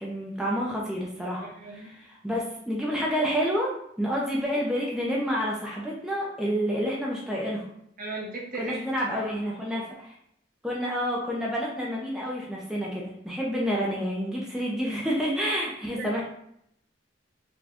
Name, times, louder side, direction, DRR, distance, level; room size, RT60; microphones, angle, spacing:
voice 1, 0.0-3.7 4.0-7.7 8.6-10.2 10.6-16.2, equal, 5° right, -4 dB, 0.5 m, -29 dB
voice 2, 1.4-1.9 8.0-9.2 15.9-16.1, right 2 dB, 50° right, -2 dB, 0.8 m, -37 dB
4.1 x 2.2 x 2.8 m, 0.73 s
head